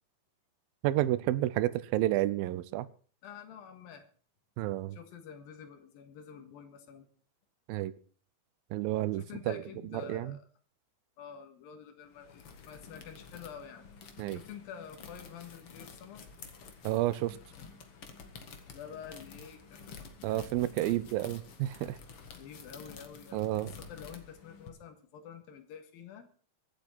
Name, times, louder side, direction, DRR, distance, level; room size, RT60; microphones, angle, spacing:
voice 1, 0.8-2.9 4.6-5.0 7.7-7.9 8.7-9.6 10.1-10.4 14.2-14.4 16.8-17.4 20.2-22.0 23.3-23.7, right 15 dB, 85° right, 2.5 m, -30 dB
voice 2, 3.2-4.0 4.9-7.1 9.1-10.5 11.2-16.3 18.7-19.9 20.3-20.5 22.3-26.3, left 7 dB, 85° left, 3.4 m, -48 dB
sound 1, 12.1-24.7, left 5 dB, 50° left, 2.1 m, -50 dB
24.0 x 8.1 x 4.4 m
omnidirectional pair, 4.1 m